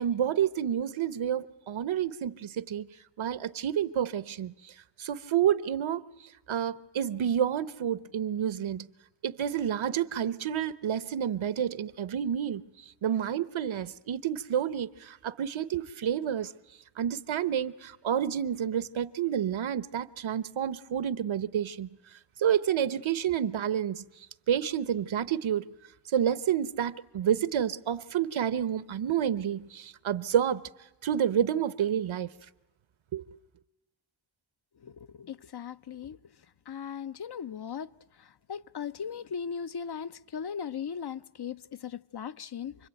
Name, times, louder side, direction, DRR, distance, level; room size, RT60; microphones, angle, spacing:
voice 1, 0.0-2.9 3.2-4.7 5.0-6.0 6.5-8.9 9.2-12.6 13.0-16.5 17.0-21.9 22.4-25.7 26.1-30.6 31.0-32.3 33.1-33.2, right 9 dB, 80° right, 1.0 m, -29 dB
voice 2, 34.8-36.2 36.7-37.9 38.2-42.9, left 7 dB, 55° left, 0.9 m, -38 dB
28.5 x 22.0 x 9.1 m
cardioid pair, 50°, 46 cm